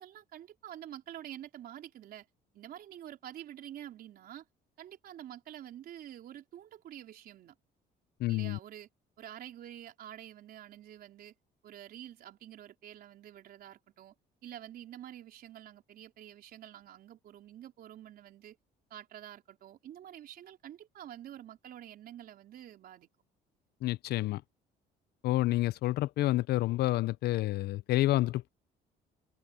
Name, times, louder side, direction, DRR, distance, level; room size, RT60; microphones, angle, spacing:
voice 1, 0.0-2.3 2.5-4.5 4.8-7.5 8.3-8.9 9.2-11.3 11.6-14.1 14.4-18.6 18.9-23.1, right 11 dB, 60° right, 4.6 m, -48 dB
voice 2, 8.2-8.6 23.8-24.4 25.2-28.5, left 16 dB, 70° left, 0.6 m, -29 dB
open air
cardioid pair, 110°, 17 cm